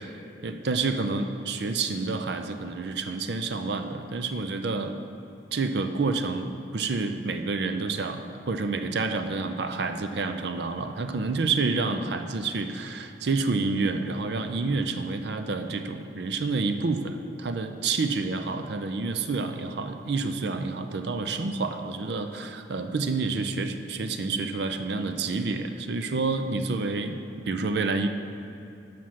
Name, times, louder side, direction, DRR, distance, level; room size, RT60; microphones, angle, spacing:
voice 1, 0.4-5.0 5.5-27.1 27.5-28.1, right 3 dB, 65° right, 7 dB, 0.5 m, -29 dB
7.4 x 5.8 x 6.2 m, 2.7 s
head